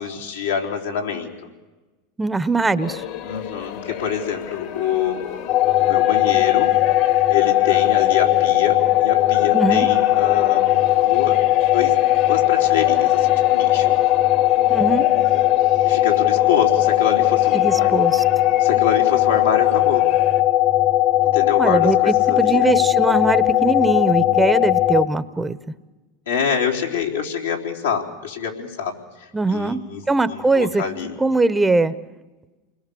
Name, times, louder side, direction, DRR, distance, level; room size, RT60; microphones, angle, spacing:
voice 1, 0.0-1.5 3.2-5.4 5.8-6.7 7.3-11.4 11.7-12.0 12.3-13.9 15.8-18.0 18.6-20.1 21.2-22.7 22.9-23.1 26.3-31.1, left 7 dB, 90° left, -1 dB, 3.8 m, -26 dB
voice 2, 2.2-3.0 9.5-9.9 14.7-15.1 17.5-18.2 21.6-25.6 29.3-30.8 31.2-31.9, right 3 dB, 10° right, 15 dB, 1.0 m, -21 dB
sound 1, 2.8-20.4, left 10 dB, 65° left, 2.1 m, -34 dB
sound 2, 5.5-25.1, left 14 dB, 40° left, 0.9 m, -18 dB
29.0 x 21.0 x 7.0 m, 1.2 s
hypercardioid pair, 90°, 0 cm